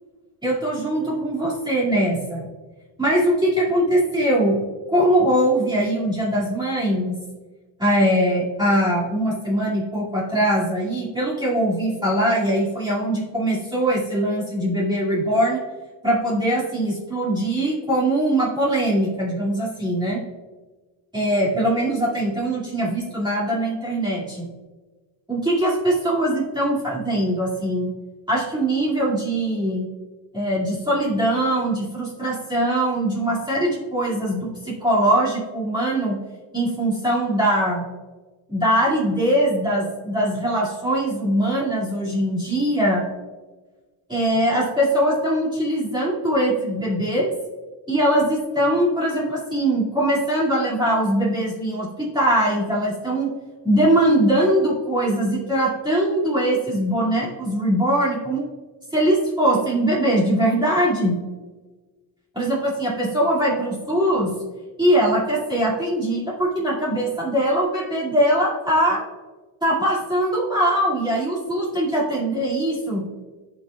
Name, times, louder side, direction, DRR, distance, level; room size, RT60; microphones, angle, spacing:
voice 1, 0.4-2.5 3.0-4.6 4.9-7.2 7.8-15.6 16.0-20.2 21.1-24.5 25.3-27.9 28.3-29.9 30.3-36.2 36.5-37.8 38.5-43.1 44.1-47.3 47.9-53.3 53.6-58.4 58.9-61.2 62.3-64.3 64.8-69.0 69.6-73.1, right 1 dB, 10° right, -8 dB, 2.2 m, -21 dB
15.0 x 6.2 x 2.3 m, 1.3 s
cardioid pair, 115°, 48 cm